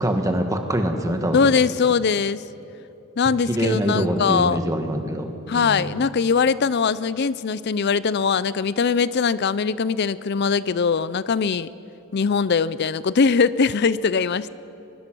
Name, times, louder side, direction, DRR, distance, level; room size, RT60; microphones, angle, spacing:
voice 1, 0.0-1.5 3.5-5.3 5.5-6.0, equal, 15° right, 5 dB, 1.6 m, -24 dB
voice 2, 1.3-2.4 3.2-4.6 5.5-11.7 12.1-14.5, left 5 dB, 50° left, 17 dB, 0.5 m, -21 dB
23.5 x 22.0 x 6.2 m, 2.9 s
head